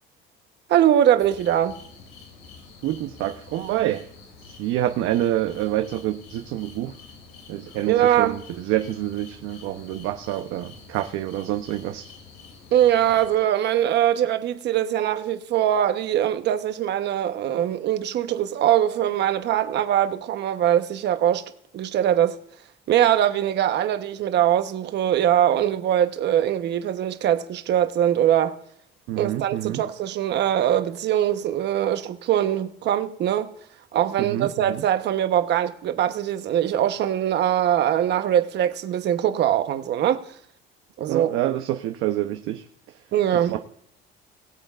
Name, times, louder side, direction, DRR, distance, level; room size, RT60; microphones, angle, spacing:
voice 1, 0.7-1.8 7.9-8.4 12.7-21.4 21.7-22.3 22.9-28.5 29.2-33.5 33.9-40.2 41.0-41.3 43.1-43.6, right 11 dB, 55° right, 1.0 m, -22 dB
sound 1, 1.2-13.4, left 5 dB, 85° left, 2.8 m, -47 dB
voice 2, 2.8-4.1 4.5-7.0 7.5-12.1 29.1-29.8 34.2-34.8 41.1-43.0 43.3-43.6, right 13 dB, 80° right, 0.8 m, -27 dB
21.5 x 7.8 x 2.4 m
cardioid pair, 140°, 21 cm